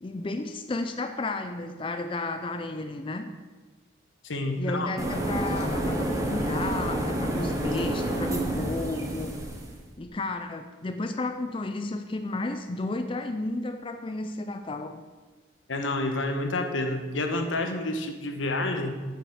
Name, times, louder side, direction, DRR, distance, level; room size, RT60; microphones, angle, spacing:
voice 1, 0.0-3.4 4.6-9.5 10.0-15.0, left 2 dB, 25° left, 7 dB, 0.4 m, -33 dB
voice 2, 4.2-4.9 15.7-18.9, left 2 dB, 85° left, 5 dB, 1.2 m, -29 dB
sound 1, 5.0-9.8, right 1 dB, 15° right, 1.2 m, -29 dB
9.1 x 5.9 x 7.0 m, 1.3 s
head